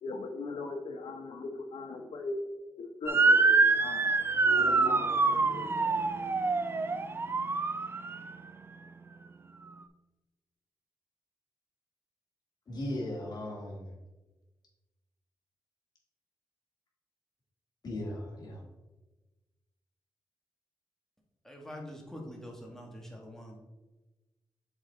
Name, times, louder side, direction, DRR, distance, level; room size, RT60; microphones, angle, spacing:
voice 1, 0.0-2.4 3.0-6.3, left 3 dB, 80° left, 4 dB, 0.9 m, -40 dB
Motor vehicle (road) / Siren, 3.1-8.3, right 4 dB, 25° right, 0.4 m, -26 dB
voice 2, 12.7-13.9 17.8-18.6, left 1 dB, 50° left, -3 dB, 2.1 m, -37 dB
voice 3, 21.4-23.6, equal, 5° left, 0 dB, 1.4 m, -45 dB
7.1 x 4.1 x 3.9 m, 1.1 s
wide cardioid pair, 120°, 9 cm